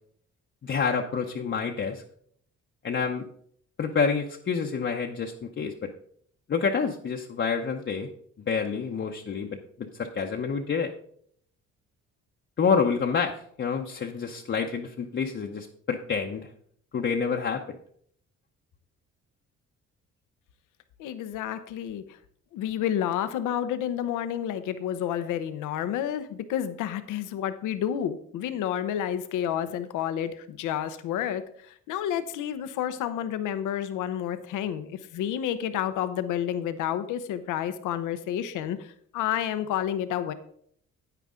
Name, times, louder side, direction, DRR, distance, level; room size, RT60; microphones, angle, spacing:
voice 1, 0.6-2.0 2.8-3.3 3.8-5.9 6.5-8.1 8.5-10.9 12.6-16.5 16.9-17.6, left 5 dB, 40° left, 1 dB, 0.8 m, -28 dB
voice 2, 21.0-22.0 22.5-31.4 31.9-38.8 39.1-40.3, left 10 dB, 90° left, 11 dB, 0.8 m, -30 dB
9.2 x 9.2 x 3.7 m, 0.64 s
cardioid pair, 90°, 30 cm